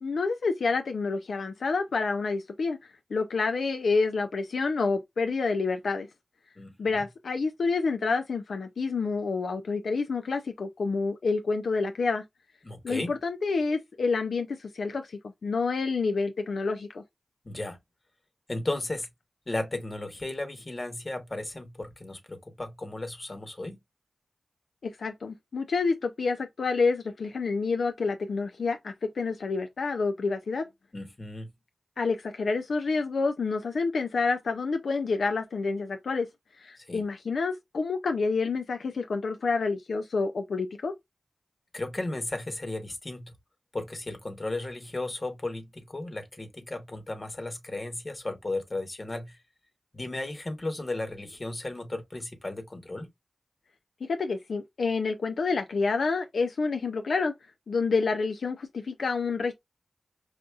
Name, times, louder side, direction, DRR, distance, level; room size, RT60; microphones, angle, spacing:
voice 1, 0.0-2.8 3.1-6.1 6.8-12.2 12.8-17.0 24.8-30.7 32.0-36.3 36.6-40.9 54.0-57.3 57.7-59.5, left 4 dB, 90° left, 0.3 m, -28 dB
voice 2, 6.6-7.0 12.6-13.1 17.4-17.8 18.5-19.1 19.5-23.8 30.9-31.5 36.8-37.0 41.7-43.3 43.7-49.4 49.9-53.1, left 2 dB, 45° left, 1.1 m, -35 dB
4.8 x 2.6 x 2.3 m
cardioid pair, 45°, 0 cm